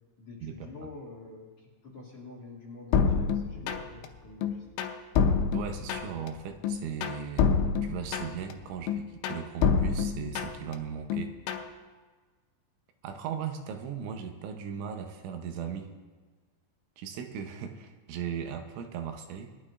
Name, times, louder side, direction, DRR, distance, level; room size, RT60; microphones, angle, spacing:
voice 1, 0.2-4.6, left 3 dB, 40° left, -4 dB, 2.6 m, -46 dB
sound 1, 2.9-4.1 4.4-6.3 6.6-8.5 8.9-10.8 11.1-11.7, left 6 dB, 90° left, 3.2 m, -27 dB
voice 2, 5.5-7.5 7.8-11.3 13.0-15.9 17.0-19.5, right 7 dB, 80° right, 5 dB, 3.2 m, -37 dB
21.5 x 12.0 x 2.5 m, 1.4 s
omnidirectional pair, 5.5 m